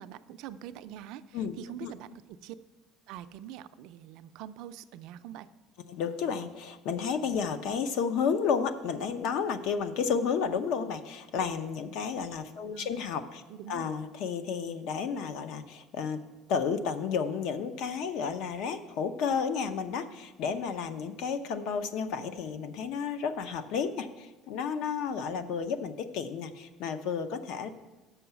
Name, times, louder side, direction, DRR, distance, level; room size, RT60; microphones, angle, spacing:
voice 1, 0.0-2.6 3.1-5.5 12.6-12.9 13.5-13.9, right 11 dB, 60° right, 11 dB, 0.4 m, -44 dB
voice 2, 5.9-13.4 13.7-16.2 16.5-27.7, left 6 dB, 60° left, 11 dB, 0.6 m, -32 dB
6.9 x 5.5 x 6.9 m, 1.1 s
cardioid pair, 170°, 0 cm